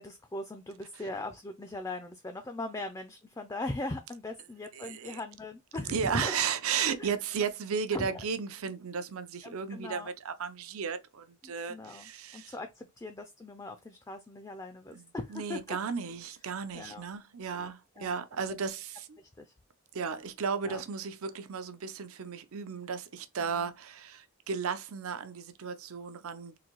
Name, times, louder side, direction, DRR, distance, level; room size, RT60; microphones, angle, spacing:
voice 1, 0.0-6.4 7.0-7.2 7.9-8.2 9.4-10.1 11.4-15.8 16.7-17.1 17.5-18.1 19.2-19.5 20.6-20.8 23.4-23.7, left 2 dB, 15° left, 0.3 m, -40 dB
voice 2, 4.7-5.2 5.9-12.5 14.9-15.0 15.3-19.2 19.9-26.6, right 6 dB, 75° right, 0.6 m, -34 dB
3.9 x 2.6 x 2.9 m
head